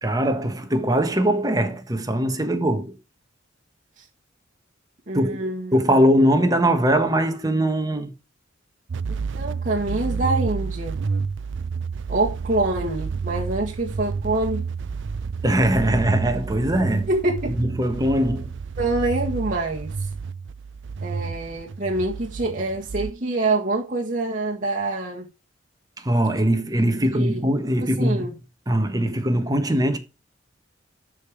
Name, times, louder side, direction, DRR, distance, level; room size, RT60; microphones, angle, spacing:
voice 1, 0.0-3.0 5.1-5.4 5.7-8.1 15.4-17.1 17.5-18.6 26.0-28.2 28.7-30.0, right 1 dB, 20° right, 1.3 m, -21 dB
voice 2, 5.1-5.7 9.1-11.0 12.1-14.6 17.1-17.6 18.8-19.9 21.0-25.2 27.1-27.4 28.0-28.3, right 2 dB, 40° right, 1.6 m, -25 dB
sound 1, 8.9-23.1, right 5 dB, 65° right, 0.5 m, -30 dB
12.0 x 5.1 x 5.0 m
head